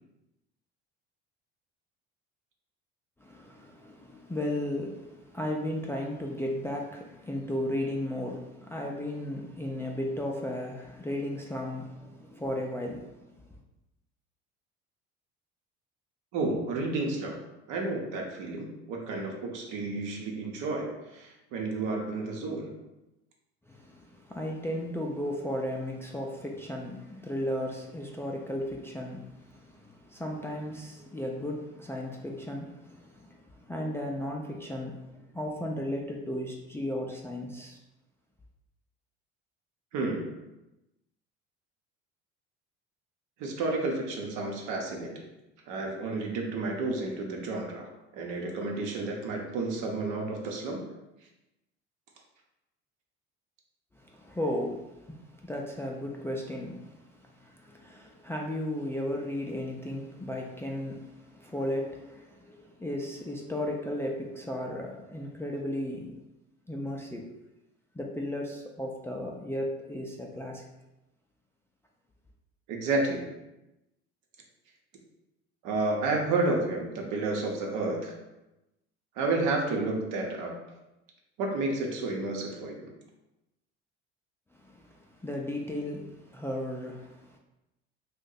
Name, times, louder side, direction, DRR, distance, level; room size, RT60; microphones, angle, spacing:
voice 1, 3.2-13.3 23.7-37.8 53.9-66.2 66.7-67.3 67.9-70.6 84.6-87.4, left 1 dB, 10° left, -1 dB, 0.3 m, -35 dB
voice 2, 16.3-17.4 17.7-22.7 39.9-40.3 43.4-45.2 45.7-47.9 48.1-50.8 72.7-73.3 75.6-78.1 79.2-80.6 81.4-82.9, right 3 dB, 70° right, 0 dB, 0.8 m, -31 dB
2.6 x 2.2 x 3.9 m, 0.95 s
supercardioid pair, 75°, 32 cm